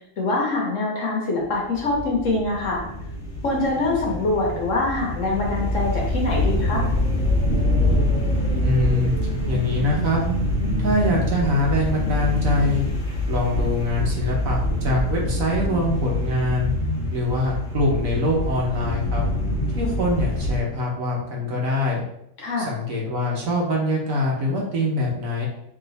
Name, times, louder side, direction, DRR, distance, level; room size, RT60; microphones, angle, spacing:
voice 1, 0.2-2.8 3.4-6.8 22.4-22.7, left 2 dB, 55° left, -1 dB, 1.2 m, -24 dB
sound 1, 1.5-20.6, left 1 dB, 35° left, 1.0 m, -25 dB
voice 2, 8.6-9.1 9.5-10.2 10.8-12.8 13.3-16.7 17.1-19.2 19.7-22.0 22.6-25.5, left 1 dB, 60° right, -2 dB, 1.3 m, -24 dB
3.5 x 3.0 x 3.9 m, 0.75 s
omnidirectional pair, 1.7 m